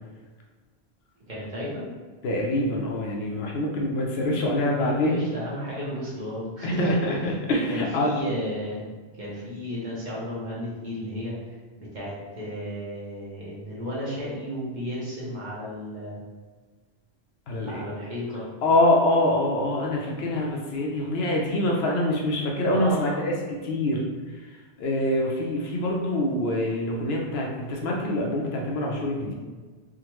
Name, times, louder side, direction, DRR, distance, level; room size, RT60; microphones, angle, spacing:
voice 1, 1.3-1.9 4.8-7.1 7.7-16.2 17.6-18.5 22.7-23.2, equal, 45° right, -6 dB, 0.9 m, -33 dB
voice 2, 2.2-5.2 6.6-8.1 17.5-17.8 18.6-23.3 23.6-24.0 24.8-29.3, left 1 dB, 70° left, -1 dB, 0.8 m, -25 dB
3.5 x 2.1 x 2.9 m, 1.4 s
omnidirectional pair, 1.1 m